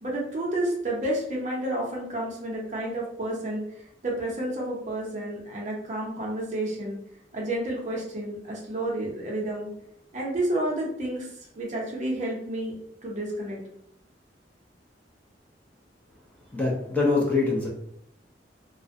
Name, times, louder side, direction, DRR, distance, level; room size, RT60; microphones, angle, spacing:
voice 1, 0.0-7.0 7.3-9.7 10.1-11.3 11.6-12.8 13.0-13.6, right 1 dB, 40° right, -2 dB, 0.6 m, -30 dB
voice 2, 16.5-17.7, left 3 dB, 10° left, -4 dB, 0.5 m, -24 dB
2.4 x 2.1 x 2.5 m, 0.71 s
head